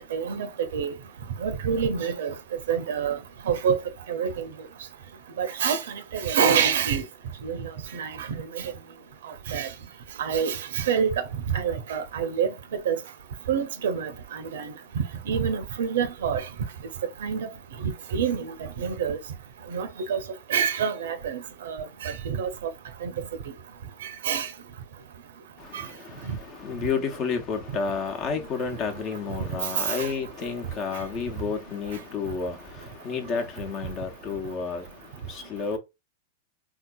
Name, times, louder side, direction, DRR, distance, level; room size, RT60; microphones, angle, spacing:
voice 1, 0.1-0.5 0.7-0.9 1.4-2.3 2.7-3.2 3.5-3.8 4.1-4.5 5.4-5.8 6.1-7.0 7.4-7.6 7.9-8.7 9.5-9.7 10.2-12.5 12.9-13.0 13.5-16.5 17.2-17.5 18.1-19.2 19.7-20.2 20.5-22.5 23.0-23.1 24.2-24.5 25.7-25.8 29.8-30.1, right 7 dB, 70° right, 0.7 m, -27 dB
voice 2, 25.6-35.8, left 5 dB, 40° left, 1.0 m, -31 dB
3.6 x 2.8 x 2.3 m
hypercardioid pair, 105°, 0 cm